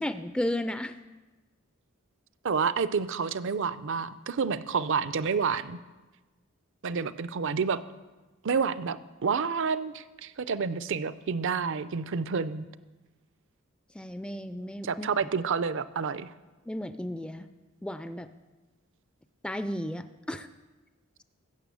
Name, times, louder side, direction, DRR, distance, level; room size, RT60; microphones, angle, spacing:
voice 1, 0.0-1.0 13.9-15.3 16.7-17.5 17.8-18.3 19.4-20.5, left 1 dB, 5° left, 10 dB, 0.3 m, -34 dB
voice 2, 2.4-5.8 6.8-7.8 8.4-12.7 14.8-16.3, right 5 dB, 60° right, 15 dB, 0.5 m, -29 dB
14.0 x 6.8 x 8.3 m, 1.2 s
head